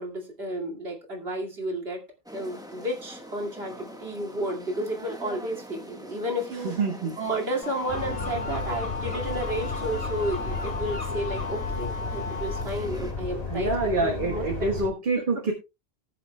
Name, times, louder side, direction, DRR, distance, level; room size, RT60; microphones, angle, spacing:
voice 1, 0.0-2.0 2.3-6.7 7.2-14.7, right 1 dB, 80° right, 0 dB, 2.6 m, -32 dB
sound 1, 2.3-13.1, equal, 5° right, 1.3 m, -44 dB
voice 2, 6.6-7.1 13.2-15.5, right 2 dB, 55° right, 2 dB, 1.7 m, -27 dB
sound 2, 7.6-12.6, left 4 dB, 70° left, 1.2 m, -36 dB
sound 3, 7.9-14.9, left 3 dB, 40° left, 1.8 m, -33 dB
19.0 x 6.8 x 2.2 m, 0.26 s
omnidirectional pair, 1.0 m